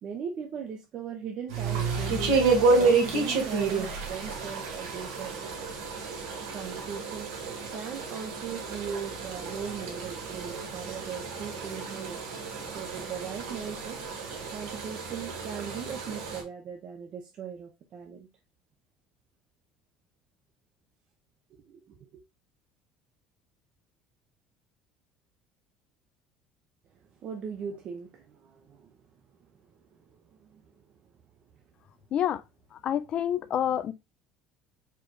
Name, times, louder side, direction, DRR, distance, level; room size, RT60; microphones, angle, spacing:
voice 1, 0.0-2.4 2.8-5.5 6.5-12.2 12.6-14.0 14.5-18.3 21.5-22.2 27.2-29.0 29.6-30.7 33.7-33.9, right 7 dB, 50° right, 0.8 m, -39 dB
sound 1, 1.5-16.4, right 4 dB, 85° right, 1.6 m, -30 dB
voice 2, 32.8-33.9, left 10 dB, 50° left, 0.4 m, -27 dB
4.7 x 2.4 x 4.7 m
supercardioid pair, 105°, 2 cm